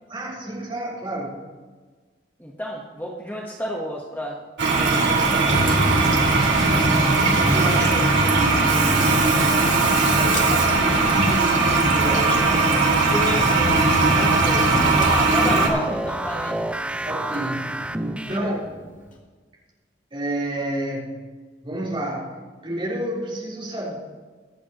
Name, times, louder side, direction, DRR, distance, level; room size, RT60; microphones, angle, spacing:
voice 1, 0.1-1.5 4.8-5.9 7.2-12.7 17.0-18.6 20.1-21.1 21.6-24.0, right 1 dB, 30° right, -5 dB, 3.8 m, -30 dB
voice 2, 2.4-5.3 13.1-14.7 15.0-16.6 18.3-18.5, equal, 10° left, -2 dB, 1.2 m, -31 dB
Toilet flush, 4.6-15.7, right 3 dB, 75° right, 2.5 m, -19 dB
Mechanical fan, 5.5-18.8, equal, 45° left, 2.3 m, -27 dB
sound 1, 14.3-18.7, right 1 dB, 5° right, 0.4 m, -30 dB
23.5 x 8.3 x 3.0 m, 1.4 s
head